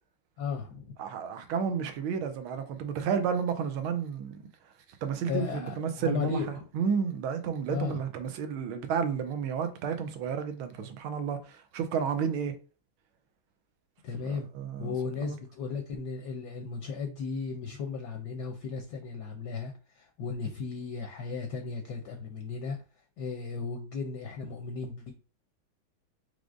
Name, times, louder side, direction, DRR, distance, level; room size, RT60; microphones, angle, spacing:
voice 1, 0.4-0.9 5.3-6.6 7.7-8.0 14.0-14.5 14.8-22.8 23.2-25.1, left 5 dB, 70° left, 1.1 m, -35 dB
voice 2, 1.0-4.4 5.0-6.4 6.7-12.5 14.2-14.9 15.2-15.3, right 7 dB, 90° right, 1.5 m, -31 dB
4.9 x 3.4 x 2.5 m
omnidirectional pair, 2.2 m